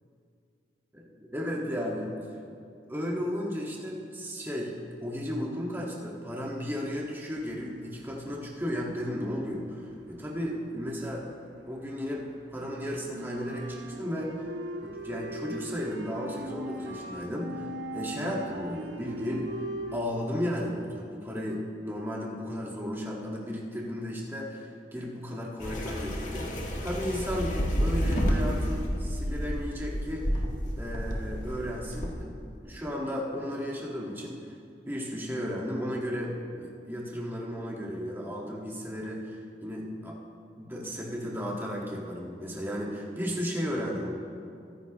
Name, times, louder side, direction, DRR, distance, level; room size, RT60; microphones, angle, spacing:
voice 1, 0.9-2.1 2.9-4.7 5.0-11.3 11.7-14.3 14.8-19.5 19.9-30.4 30.8-32.4 32.6-34.4 34.9-40.2 40.6-44.1, equal, 10° right, -3 dB, 1.7 m, -34 dB
sound 1, 7.3-8.3 8.6-11.5 11.8-20.0, right 1 dB, 85° right, 1.1 m, -39 dB
sound 2, 25.6-32.1, equal, 45° left, 1.8 m, -30 dB
22.5 x 10.5 x 3.1 m, 2.4 s
head